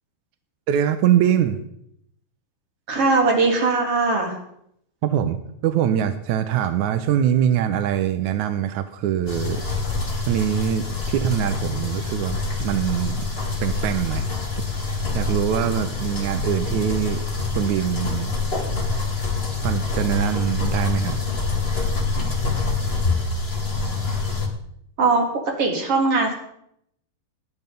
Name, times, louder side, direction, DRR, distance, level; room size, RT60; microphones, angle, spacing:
voice 1, 0.7-1.6 5.0-9.6 10.2-13.2 13.6-14.3 14.8-17.2 17.5-18.4 19.6-21.2, right 10 dB, 75° right, 9 dB, 1.8 m, -23 dB
voice 2, 2.9-4.3 25.0-25.2 25.6-26.3, right 3 dB, 40° right, 0 dB, 4.0 m, -20 dB
sound 1, 9.3-24.5, left 4 dB, 25° left, 1.4 m, -26 dB
18.5 x 11.5 x 5.3 m, 0.73 s
omnidirectional pair, 4.4 m